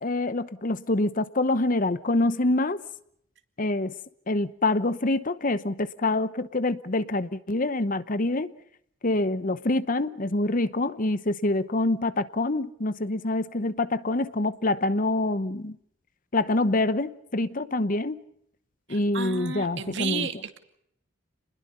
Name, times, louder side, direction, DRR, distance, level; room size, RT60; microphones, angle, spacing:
voice 1, 0.0-2.8 3.6-3.9 4.3-8.5 9.0-15.8 16.3-18.2 18.9-20.3, left 2 dB, 40° left, 0.9 m, -26 dB
voice 2, 18.9-20.6, right 5 dB, 60° right, 2.4 m, -32 dB
29.0 x 21.0 x 5.6 m
head